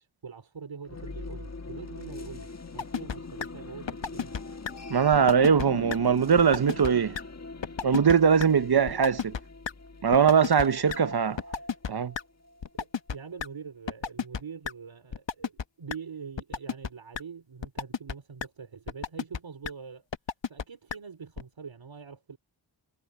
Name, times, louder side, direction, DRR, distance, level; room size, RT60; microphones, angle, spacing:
voice 1, 0.0-4.3 8.5-9.1 10.6-11.0 11.3-11.7 12.7-20.0 20.4-22.4, right 6 dB, 75° right, 3.3 m, -44 dB
sound 1, 0.8-12.7, left 3 dB, 35° left, 1.6 m, -42 dB
sound 2, 2.8-3.2 3.4-3.5 3.9-4.4 4.6-4.7 5.1-5.7 5.9-6.0 6.4-6.9 7.1-7.2 7.6-8.1 8.4-8.5 8.9-9.4 9.7-9.8 10.1-11.0 11.4-12.2 12.6-13.5 13.9-14.4 14.6-14.7 15.1-15.6 15.9-16.0 16.4-16.9 17.1-17.2 17.6-18.1 18.4-18.5 18.9-19.4 19.6-19.7 20.1-20.6 20.9-21.0 21.4-21.5, left 6 dB, 70° left, 1.1 m, -31 dB
voice 2, 4.9-7.2 7.8-9.2 10.0-11.3 11.9-12.1, right 7 dB, 55° right, 0.8 m, -21 dB
wide cardioid pair, 80°, 46 cm